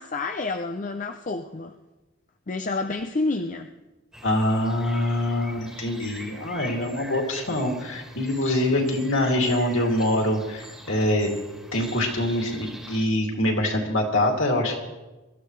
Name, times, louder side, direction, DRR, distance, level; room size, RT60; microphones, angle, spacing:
voice 1, 0.0-1.8 2.5-3.7 8.7-8.8, left 3 dB, 35° left, 6 dB, 0.5 m, -29 dB
sound 1, 4.1-13.1, equal, 5° right, 1.8 m, -43 dB
voice 2, 4.2-11.3 11.7-14.8, left 1 dB, 60° left, 1 dB, 2.7 m, -24 dB
23.0 x 14.5 x 3.3 m, 1.1 s
head